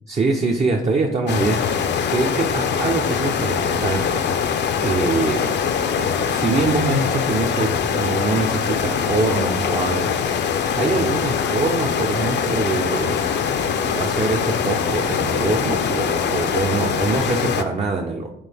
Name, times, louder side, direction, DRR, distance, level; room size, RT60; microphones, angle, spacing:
voice 1, 0.1-5.5 6.0-13.2 13.8-18.3, right 3 dB, 35° right, 1 dB, 0.7 m, -24 dB
sound 1, 1.3-17.6, left 7 dB, 60° left, 0.6 m, -22 dB
8.7 x 3.7 x 3.5 m, 0.87 s
cardioid pair, 90°, 20 cm